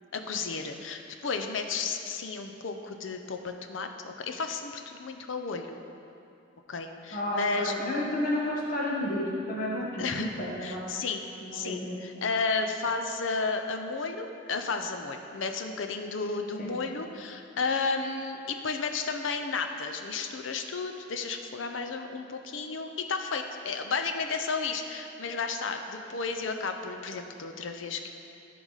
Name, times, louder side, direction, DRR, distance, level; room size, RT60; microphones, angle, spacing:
voice 1, 0.1-5.8 6.7-7.7 10.0-11.2 11.5-28.1, left 4 dB, 70° left, 6 dB, 0.6 m, -33 dB
voice 2, 7.1-11.0 11.4-12.0 16.6-16.7, left 1 dB, 45° left, -5 dB, 1.5 m, -31 dB
14.0 x 4.7 x 4.0 m, 2.7 s
head